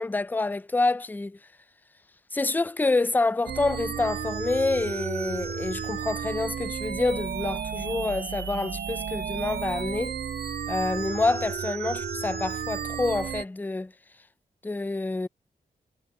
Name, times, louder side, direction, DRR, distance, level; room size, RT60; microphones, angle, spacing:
voice 1, 0.0-1.4 2.3-10.2 10.7-13.9 14.6-15.3, left 3 dB, 10° left, 0.4 m, -27 dB
sound 1, 3.4-13.4, right 6 dB, 80° right, 1.4 m, -33 dB
cardioid pair, 80°, 17 cm